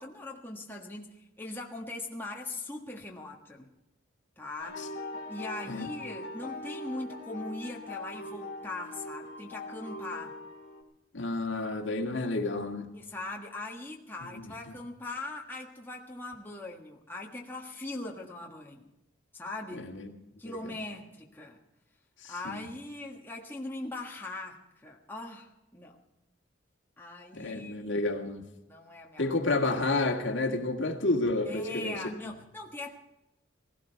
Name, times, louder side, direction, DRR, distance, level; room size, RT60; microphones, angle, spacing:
voice 1, 0.0-3.7 4.4-4.9 5.3-10.4 12.9-18.9 19.3-19.9 20.4-21.6 22.3-26.0 27.0-27.8 28.7-29.3 31.4-32.9, left 2 dB, 10° left, -1 dB, 1.5 m, -40 dB
sound 1, 4.6-10.8, left 2 dB, 45° left, 3.0 m, -41 dB
voice 2, 11.1-12.9 14.4-14.7 19.7-20.1 20.4-20.6 22.2-22.6 27.3-28.4 29.2-32.0 32.3-32.4, left 2 dB, 65° left, 3 dB, 1.9 m, -30 dB
18.0 x 16.5 x 4.6 m, 0.93 s
head